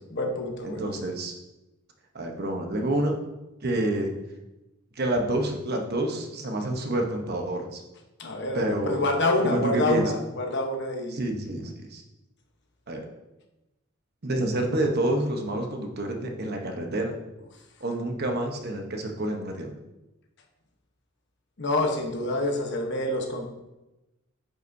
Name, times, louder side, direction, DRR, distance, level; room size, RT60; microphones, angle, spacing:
voice 1, 0.1-0.9 8.2-11.2 21.6-23.5, left 2 dB, 60° left, 3 dB, 1.0 m, -27 dB
voice 2, 0.6-1.3 2.1-3.1 3.6-4.2 5.0-7.8 8.5-9.0 9.4-10.0 11.1-12.0 12.9-13.1 14.2-17.1 17.8-19.7, right 1 dB, 50° right, 3 dB, 0.9 m, -28 dB
8.9 x 5.7 x 2.7 m, 1.0 s
head